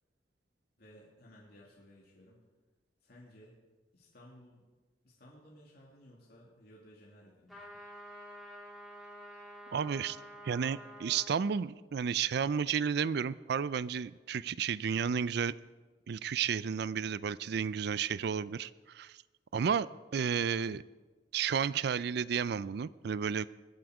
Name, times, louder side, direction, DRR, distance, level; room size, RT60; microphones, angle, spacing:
voice 1, 0.8-2.4 3.0-3.6 3.9-4.6 5.0-7.8, equal, 60° left, -4 dB, 2.5 m, -57 dB
sound 1, 7.5-11.3, equal, ahead, 3.4 m, -49 dB
voice 2, 9.7-10.2 10.4-15.5 16.1-19.2 19.5-19.9 20.1-20.8 21.3-23.5, right 7 dB, 65° right, 18 dB, 0.4 m, -32 dB
22.5 x 7.9 x 4.9 m, 1.3 s
head